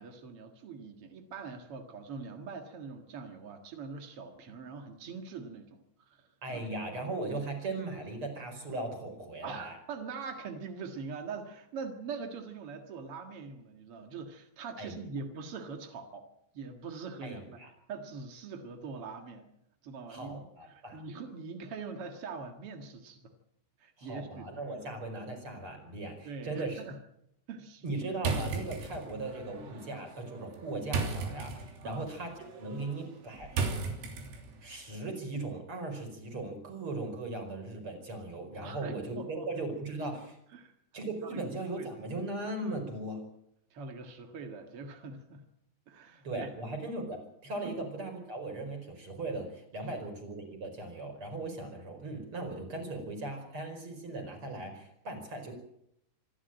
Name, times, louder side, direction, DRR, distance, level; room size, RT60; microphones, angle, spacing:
voice 1, 0.0-6.6 9.4-16.3 16.5-19.5 19.8-23.3 23.8-24.5 26.2-27.0 27.5-27.9 31.8-32.0 38.6-39.5 40.5-40.7 41.2-41.5 41.8-41.9 43.7-45.4 45.9-46.5 47.6-47.7, right 4 dB, 65° right, 5 dB, 1.4 m, -43 dB
voice 2, 6.4-9.8 14.8-15.0 17.2-17.7 20.1-21.0 24.0-26.8 27.8-33.6 34.6-40.4 40.9-43.2 46.2-55.5, right 2 dB, 30° right, 4 dB, 5.2 m, -38 dB
sound 1, 28.2-34.7, right 4 dB, 80° right, 5.4 m, -37 dB
26.0 x 12.5 x 9.0 m, 0.78 s
omnidirectional pair, 5.4 m